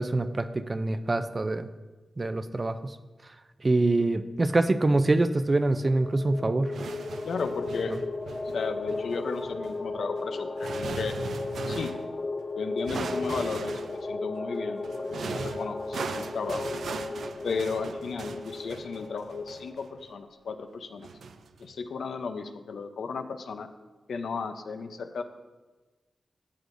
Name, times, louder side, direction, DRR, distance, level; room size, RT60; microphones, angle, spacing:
voice 1, 0.0-1.7 2.2-2.8 3.6-6.7, right 2 dB, 30° right, 10 dB, 0.4 m, -25 dB
sound 1, 5.7-20.1, left 3 dB, 35° left, 0.5 m, -35 dB
sound 2, 6.7-12.1 12.9-14.1 14.8-20.1 21.0-21.7, right 5 dB, 90° right, 0.4 m, -39 dB
voice 2, 7.2-8.0 8.5-11.2 11.7-12.0 12.6-16.7 17.4-21.1 21.6-23.7 24.1-25.2, left 5 dB, 85° left, 8 dB, 0.6 m, -34 dB
12.5 x 8.1 x 2.6 m, 1.2 s
wide cardioid pair, 105°, 0 cm